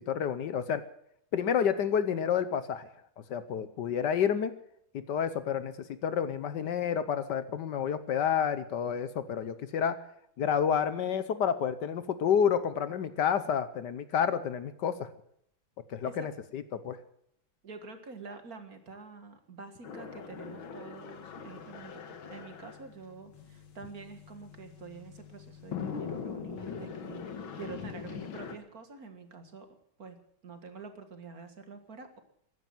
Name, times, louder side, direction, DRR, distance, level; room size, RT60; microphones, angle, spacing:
voice 1, 0.1-0.8 1.3-2.9 3.3-4.5 5.1-5.7 6.0-10.0 10.4-15.1 15.9-17.0, left 8 dB, 65° left, 13 dB, 1.4 m, -29 dB
voice 2, 17.6-29.7 30.0-32.2, right 4 dB, 50° right, 7 dB, 2.1 m, -47 dB
sound 1, 19.8-28.6, left 6 dB, 90° left, 2.3 m, -42 dB
15.0 x 12.0 x 7.6 m, 0.71 s
omnidirectional pair, 2.1 m